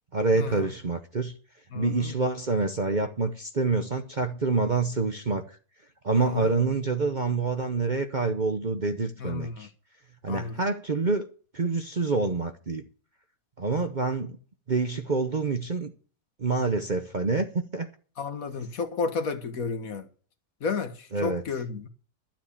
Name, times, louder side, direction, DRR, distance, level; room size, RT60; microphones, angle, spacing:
voice 1, 0.1-1.3 1.7-5.6 6.0-9.7 10.2-11.3 11.5-12.8 13.6-14.4 14.7-15.9 16.4-17.5 17.7-17.9 21.1-21.4, right 3 dB, 35° right, 0.8 m, -27 dB
voice 2, 1.7-2.1 6.1-6.5 9.2-9.7 10.3-10.5 18.2-20.1 20.6-21.9, left 4 dB, 60° left, 1.7 m, -32 dB
12.5 x 7.4 x 7.0 m
omnidirectional pair, 1.7 m